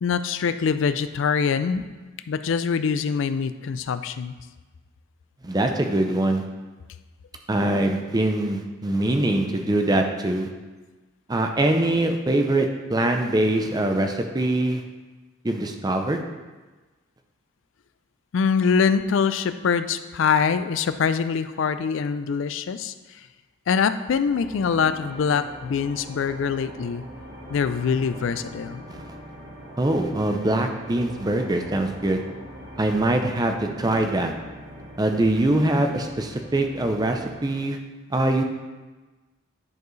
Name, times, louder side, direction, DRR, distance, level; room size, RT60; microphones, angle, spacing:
voice 1, 0.0-1.8 2.3-4.4 18.3-22.9 23.7-27.0 27.5-28.8, left 6 dB, 65° left, 12 dB, 0.3 m, -24 dB
voice 2, 5.4-6.4 7.5-10.5 11.3-14.8 15.4-16.2 28.9-29.0 29.8-32.2 32.8-34.3 35.0-37.8 38.1-38.4, right 1 dB, 20° right, 4 dB, 0.5 m, -23 dB
sound 1, 24.2-37.6, equal, 70° right, 1.9 m, -42 dB
10.5 x 4.5 x 3.1 m, 1.3 s
head